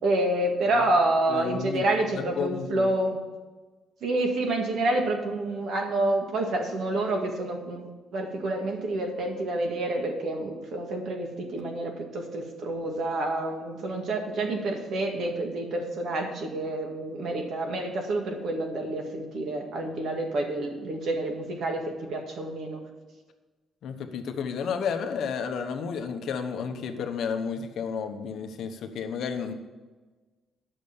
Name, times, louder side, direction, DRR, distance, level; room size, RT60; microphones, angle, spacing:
voice 1, 0.0-3.2 4.0-22.8, right 2 dB, 60° right, 3 dB, 1.9 m, -28 dB
voice 2, 1.3-1.8 2.1-2.9 23.8-29.5, left 6 dB, 60° left, 6 dB, 1.0 m, -32 dB
10.5 x 6.6 x 7.1 m, 1.3 s
cardioid pair, 165°, 0 cm